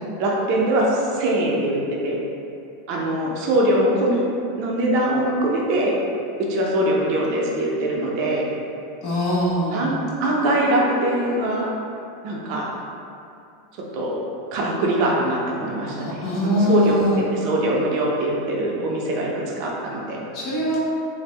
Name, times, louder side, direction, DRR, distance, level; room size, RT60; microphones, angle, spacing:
voice 1, 0.2-2.2 2.9-4.2 4.6-5.9 6.5-8.4 9.7-11.7 12.2-12.7 13.9-14.2 14.5-20.2, right 1 dB, 55° right, -3 dB, 0.6 m, -22 dB
voice 2, 9.0-9.9 15.9-17.2 20.3-20.8, left 1 dB, 50° left, -7 dB, 1.1 m, -22 dB
3.4 x 2.1 x 3.1 m, 2.6 s
hypercardioid pair, 90°, 0 cm